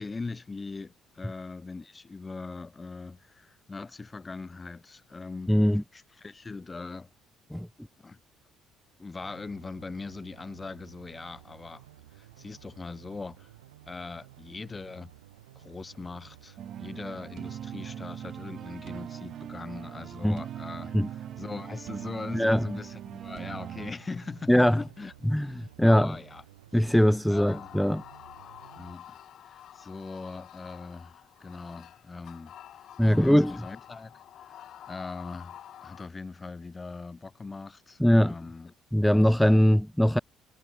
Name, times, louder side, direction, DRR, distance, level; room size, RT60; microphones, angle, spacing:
voice 1, 0.0-5.6 5.9-7.1 8.0-8.2 9.0-11.8 12.1-13.5 13.9-15.1 15.5-26.4 27.3-27.8 28.8-29.2 29.4-32.5 33.1-34.5 34.9-39.2, left 3 dB, 25° left, 3.0 m, -41 dB
voice 2, 5.5-5.8 7.5-7.7 20.2-20.4 20.9-21.1 22.3-22.6 24.5-24.8 25.3-26.2 26.7-28.0 33.0-33.6 38.0-38.3 38.9-40.2, equal, 5° left, 0.6 m, -21 dB
sound 1, 9.2-29.0, right 15 dB, 90° right, 2.0 m, -54 dB
sound 2, 16.6-23.9, right 10 dB, 55° right, 0.7 m, -40 dB
sound 3, 27.5-36.1, left 11 dB, 60° left, 3.8 m, -48 dB
hypercardioid pair, 60°, 0 cm